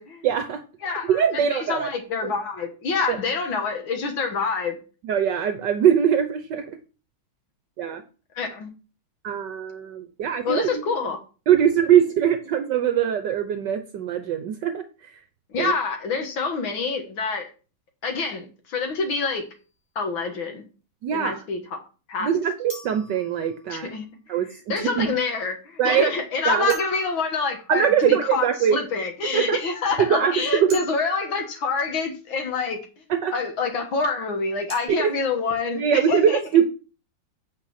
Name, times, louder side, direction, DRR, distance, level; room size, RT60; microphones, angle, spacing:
voice 1, 0.2-0.6 1.1-1.9 3.1-3.2 5.0-6.7 7.8-8.0 9.2-10.8 11.5-14.8 15.6-15.7 21.0-21.4 22.2-23.9 24.3-25.1 25.8-26.1 26.5-26.7 27.7-28.8 29.3-29.6 30.1-30.8 33.1-33.3 35.0-35.1 35.8-36.7, right 8 dB, 65° right, 8 dB, 1.3 m, -22 dB
voice 2, 0.8-4.8 8.4-8.7 10.4-11.2 15.5-17.5 18.0-19.5 20.0-20.6 21.1-21.8 22.1-22.3 23.7-24.1 24.7-32.8 33.3-36.4, left 4 dB, 75° left, 5 dB, 2.1 m, -27 dB
sound 1, 19.3-19.4 22.7-24.0 26.7-28.1 30.7-31.9 34.7-34.9, left 2 dB, 10° right, 5.0 m, -43 dB
8.9 x 5.2 x 5.7 m, 0.36 s
omnidirectional pair, 2.2 m